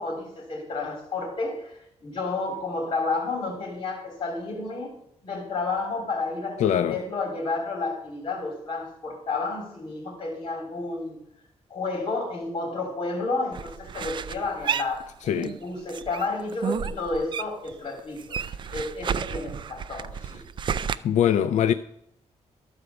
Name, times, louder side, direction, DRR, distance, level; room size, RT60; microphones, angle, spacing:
voice 1, 0.0-4.9 5.2-11.2 11.7-18.4 18.7-20.4, left 3 dB, 45° left, 3.2 m, -31 dB
voice 2, 6.6-7.0 15.3-15.5 21.0-21.7, left 9 dB, 85° left, 0.4 m, -22 dB
sound 1, 13.5-15.6 15.9-17.7 18.0-21.0, right 7 dB, 40° right, 0.4 m, -31 dB
13.0 x 4.9 x 6.8 m
wide cardioid pair, 180°, 12 cm